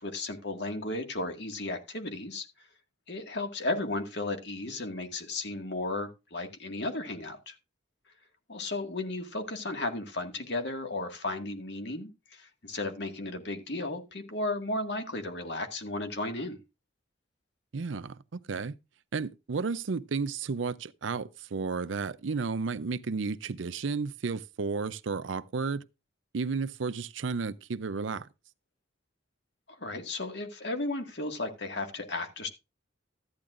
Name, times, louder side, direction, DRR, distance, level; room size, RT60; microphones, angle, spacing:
voice 1, 0.0-2.5 3.1-7.6 8.5-16.6 29.7-32.5, left 2 dB, 60° left, 1.9 m, -34 dB
voice 2, 17.7-18.8 19.1-25.8 26.3-28.3, right 4 dB, 80° right, 0.5 m, -33 dB
13.5 x 9.6 x 2.5 m
head